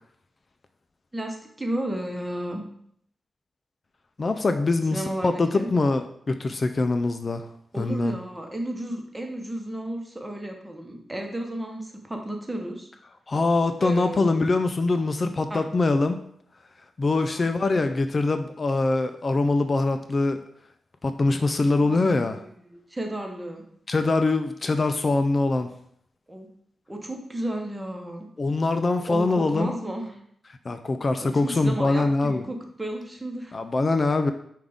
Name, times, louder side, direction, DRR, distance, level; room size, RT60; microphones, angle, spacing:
voice 1, 1.1-2.6 4.9-5.7 7.7-12.9 13.8-14.4 15.5-15.7 17.3-17.5 21.8-23.6 26.3-26.5 26.9-28.3 29.0-30.2 31.2-33.6, right 1 dB, 15° right, 2 dB, 0.9 m, -33 dB
voice 2, 4.2-7.5 7.8-8.2 13.3-16.2 17.0-20.4 21.0-22.4 23.9-25.7 28.4-29.7 30.7-32.4 33.5-34.3, left 3 dB, 45° left, 8 dB, 0.3 m, -23 dB
5.1 x 2.4 x 3.5 m, 0.67 s
cardioid pair, 50°, 0 cm